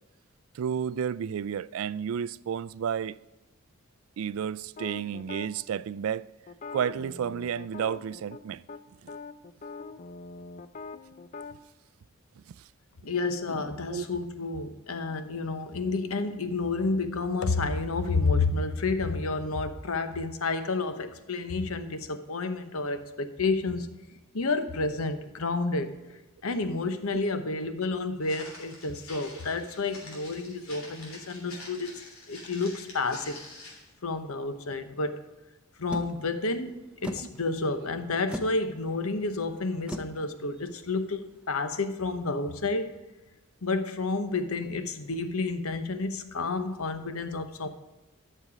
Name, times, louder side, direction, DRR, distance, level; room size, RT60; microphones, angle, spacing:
voice 1, 0.5-3.2 4.2-6.3 6.7-8.6 13.9-14.1 37.2-37.3, right 8 dB, 70° right, 0.3 m, -31 dB
sound 1, 4.8-5.5 6.5-8.4 8.7-8.8 9.1-11.6, left 4 dB, 35° left, 0.5 m, -42 dB
voice 2, 13.0-23.9 24.3-26.0 26.4-32.0 32.3-33.4 34.0-35.2 35.8-42.9 43.6-47.7, left 3 dB, 85° left, 0.9 m, -30 dB
Walk footsteps, 28.2-33.9, left 2 dB, 70° left, 3.1 m, -47 dB
sound 2, 35.9-41.5, equal, 5° right, 0.6 m, -42 dB
11.0 x 6.7 x 5.0 m
head